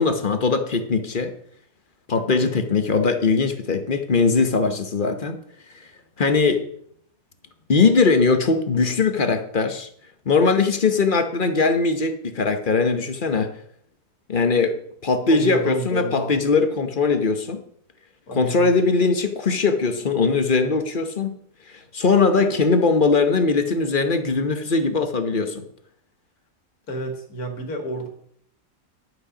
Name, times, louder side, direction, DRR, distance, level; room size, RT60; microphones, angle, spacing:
voice 1, 0.0-1.3 2.1-5.4 6.2-6.6 7.7-9.9 10.3-13.5 14.3-14.7 15.0-17.6 18.3-21.4 21.7-25.6, left 4 dB, 35° left, 8 dB, 1.0 m, -20 dB
voice 2, 2.3-2.6 15.3-16.4 18.3-18.7 26.9-28.1, right 1 dB, 65° left, 5 dB, 2.4 m, -30 dB
11.0 x 8.5 x 5.1 m, 0.65 s
omnidirectional pair, 1.8 m